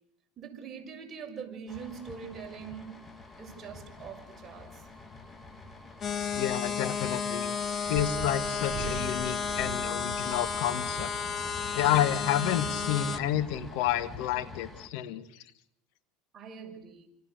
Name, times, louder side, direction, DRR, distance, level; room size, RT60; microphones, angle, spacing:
voice 1, 0.4-3.0 3.4-4.8 16.3-17.1, right 7 dB, 30° right, 6.5 m, -43 dB
sound 1, 1.7-14.9, left 4 dB, 15° left, 2.5 m, -48 dB
sound 2, 2.8-14.2, right 11 dB, 45° right, 4.9 m, -46 dB
sound 3, 6.0-13.2, left 6 dB, 35° left, 2.2 m, -32 dB
voice 2, 6.3-7.6 7.9-11.1 11.7-15.3, left 11 dB, 65° left, 2.5 m, -30 dB
29.5 x 27.0 x 6.8 m
supercardioid pair, 110°, 0 cm